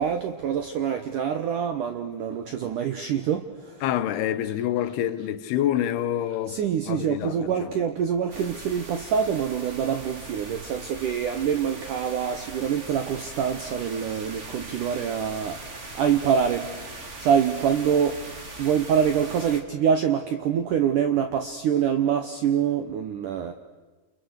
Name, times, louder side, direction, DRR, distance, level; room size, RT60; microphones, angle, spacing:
voice 1, 0.0-3.8 6.5-18.2 18.6-23.5, right 8 dB, 80° right, 1.8 m, -25 dB
voice 2, 3.8-6.6 6.9-7.7, left 11 dB, 70° left, 2.7 m, -27 dB
sound 1, 8.3-19.6, right 2 dB, 55° right, 0.7 m, -40 dB
29.5 x 29.0 x 6.5 m
omnidirectional pair, 5.4 m